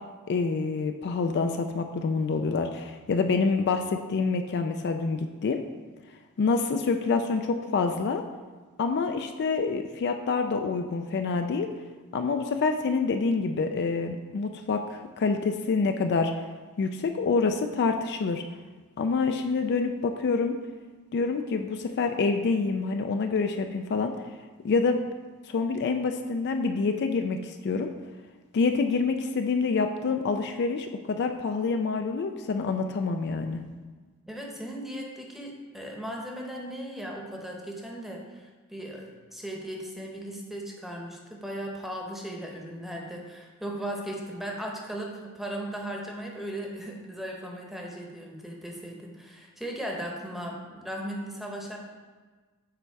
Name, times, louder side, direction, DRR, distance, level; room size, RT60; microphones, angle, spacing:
voice 1, 0.3-5.6 6.4-8.2 8.8-11.7 12.1-16.3 16.8-18.4 19.0-20.6 21.1-24.1 24.6-25.0 25.5-27.9 28.5-33.6, left 4 dB, 50° left, 6 dB, 0.4 m, -27 dB
voice 2, 34.3-51.8, right 1 dB, ahead, -1 dB, 0.9 m, -37 dB
6.8 x 4.3 x 4.6 m, 1.4 s
head